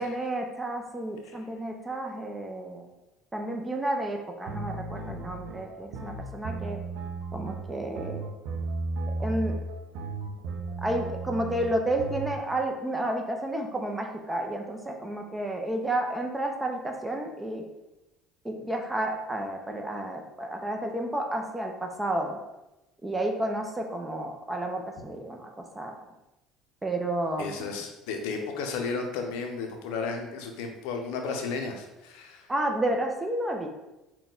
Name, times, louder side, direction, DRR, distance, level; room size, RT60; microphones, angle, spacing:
voice 1, 0.0-2.9 3.3-6.8 7.3-8.2 9.2-9.6 10.8-17.7 18.4-22.4 23.0-25.5 25.8-26.0 26.8-27.7 32.5-33.7, right 1 dB, 15° right, 2 dB, 0.6 m, -31 dB
sound 1, 4.5-12.4, right 3 dB, 70° right, 0.5 m, -35 dB
voice 2, 27.4-32.5, left 4 dB, 75° left, 4 dB, 0.5 m, -33 dB
3.9 x 2.2 x 3.8 m, 0.99 s
hypercardioid pair, 70°, 0 cm